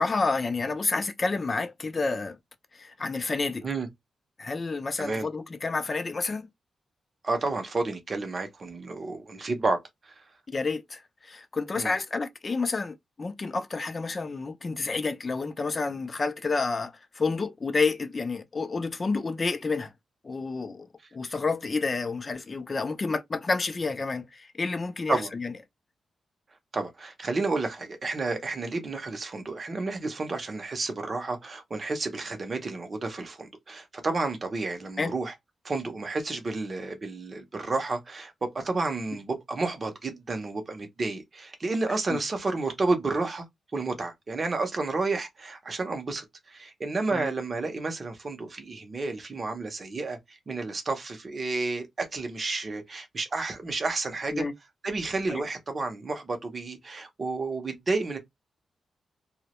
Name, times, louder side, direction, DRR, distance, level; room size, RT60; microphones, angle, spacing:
voice 1, 0.0-2.4 2.7-3.7 4.4-6.5 10.5-19.9 20.2-25.5 35.0-35.1 41.9-42.2 47.1-47.3 54.3-54.5 55.3-55.4, left 4 dB, 30° left, 0.4 m, -29 dB
voice 2, 7.2-9.8 10.1-10.2 11.8-11.9 25.1-25.3 26.7-35.3 35.6-43.4 43.7-54.4 54.8-58.2, right 3 dB, 35° right, 0.6 m, -31 dB
2.1 x 2.0 x 2.8 m
wide cardioid pair, 130°, 0 cm